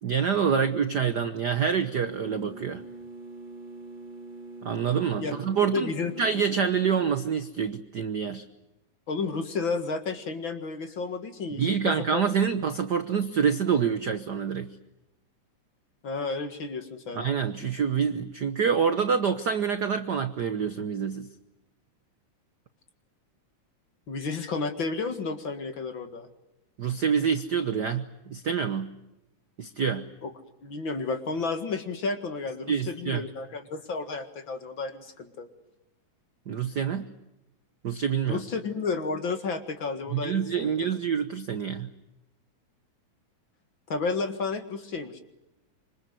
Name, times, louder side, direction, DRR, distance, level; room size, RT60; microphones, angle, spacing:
voice 1, 0.0-2.8 4.6-5.9 6.2-8.4 11.6-14.7 17.1-21.3 26.8-28.9 29.6-30.1 32.7-33.2 36.5-37.1 37.8-38.5 40.1-41.9, right 7 dB, 65° right, 9 dB, 1.0 m, -26 dB
sound 1, 2.0-7.0, right 2 dB, 20° right, 1.3 m, -43 dB
voice 2, 5.7-6.1 9.1-12.2 16.0-17.3 24.1-26.3 30.2-30.3 30.6-35.5 38.3-40.8 43.9-45.2, left 4 dB, 45° left, 7 dB, 2.3 m, -32 dB
26.5 x 25.0 x 7.9 m, 0.96 s
omnidirectional pair, 3.4 m